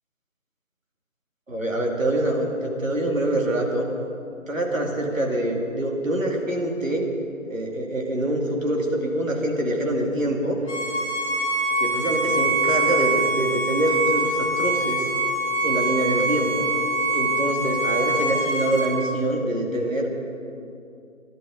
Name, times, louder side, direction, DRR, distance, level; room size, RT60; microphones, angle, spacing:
voice 1, 1.5-3.9 4.5-7.1 7.5-10.6 11.8-15.1 15.6-16.6 17.1-20.1, right 1 dB, 70° right, 0 dB, 2.8 m, -25 dB
Bowed string instrument, 10.7-18.9, right 1 dB, 5° left, 3.7 m, -24 dB
22.0 x 11.0 x 4.1 m, 2.6 s
figure-of-eight pair, 170°, 41 cm